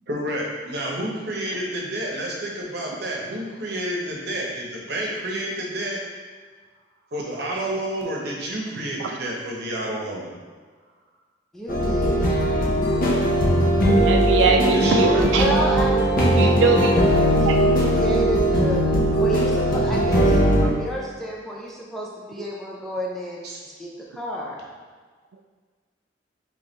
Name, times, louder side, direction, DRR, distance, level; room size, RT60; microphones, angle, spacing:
voice 1, 0.1-6.0 7.1-10.3 14.7-15.3 23.4-23.6, right 1 dB, 60° right, -2 dB, 0.9 m, -29 dB
voice 2, 11.5-12.4 15.4-18.8 19.2-23.4 23.8-24.7, equal, ahead, -4 dB, 0.5 m, -31 dB
sound 1, 11.7-20.7, right 1 dB, 50° left, 0.9 m, -19 dB
voice 3, 12.5-13.1 13.9-15.5 16.4-17.6 17.8-17.9, right 4 dB, 80° right, 3 dB, 0.3 m, -23 dB
3.6 x 3.3 x 3.9 m, 1.5 s
head